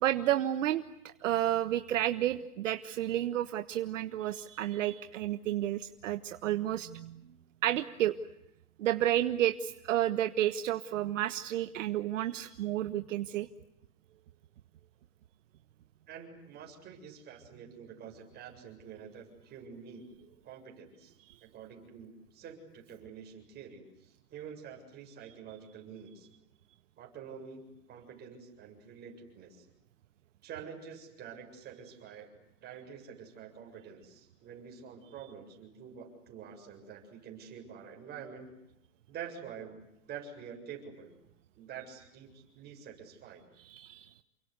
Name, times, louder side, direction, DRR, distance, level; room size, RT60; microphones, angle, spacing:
voice 1, 0.0-7.2 7.6-8.1 8.8-13.5 21.3-21.4 43.6-44.1, right 12 dB, 60° right, 10 dB, 1.4 m, -31 dB
voice 2, 16.1-20.1 20.4-21.1 21.4-26.3 27.0-29.7 30.4-32.3 32.6-38.6 39.1-41.2 41.6-43.4, right 7 dB, 20° right, 2 dB, 7.4 m, -47 dB
29.0 x 24.5 x 8.2 m, 0.86 s
hypercardioid pair, 155°, 43 cm